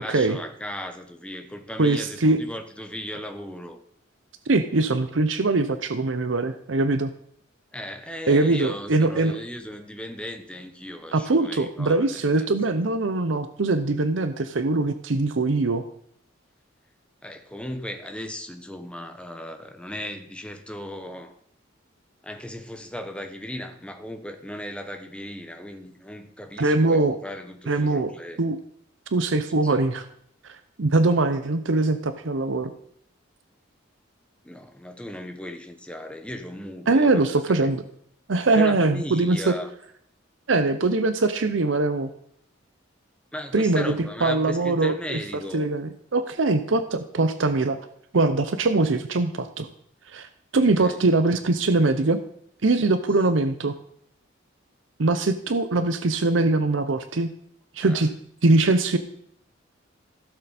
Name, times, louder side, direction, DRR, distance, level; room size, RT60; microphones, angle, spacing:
voice 1, 0.0-3.8 7.7-12.5 17.2-21.3 22.2-28.4 29.6-29.7 34.4-37.4 38.5-39.7 43.3-45.7 50.8-51.0 57.8-58.0, left 1 dB, 5° left, 6 dB, 1.0 m, -36 dB
voice 2, 1.8-2.4 4.5-7.1 8.3-9.4 11.1-15.8 26.6-27.2 27.7-28.1 28.4-28.6 29.1-30.0 30.8-32.7 36.9-37.8 38.3-39.6 40.5-42.1 43.5-44.0 44.2-45.2 45.5-47.8 48.1-49.7 50.1-52.2 52.6-53.7 55.0-57.3 57.7-58.1 58.4-59.0, right 2 dB, 70° right, 9 dB, 0.7 m, -22 dB
16.0 x 6.7 x 4.2 m, 0.68 s
head